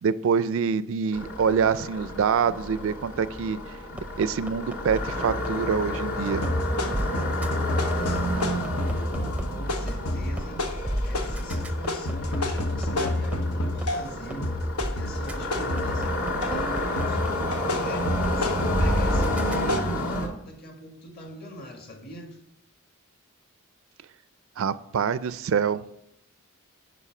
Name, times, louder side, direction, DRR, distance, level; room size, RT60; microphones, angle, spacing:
voice 1, 0.0-3.6 4.2-6.5 24.6-25.8, right 6 dB, 60° right, 15 dB, 0.3 m, -25 dB
sound 1, 1.1-20.3, left 1 dB, 65° left, 1.9 m, -31 dB
sound 2, 4.0-5.5 5.9-6.0 6.4-6.5 6.9-7.1 7.4-7.5 7.9-9.4 9.9-10.0 10.4-10.5 10.9-13.4 13.8-13.9 14.3-14.4 14.8-14.9 15.3-15.4 15.8-17.3 17.7-17.8 18.2-18.3 18.7-19.6, equal, 5° right, 0.5 m, -30 dB
sound 3, 6.3-14.1 14.4-16.6 17.0-19.8, left 1 dB, 85° left, 1.1 m, -29 dB
voice 2, 7.7-10.7 11.0-22.4, left 1 dB, 45° left, 2 dB, 1.9 m, -42 dB
10.0 x 5.3 x 4.9 m, 0.80 s
head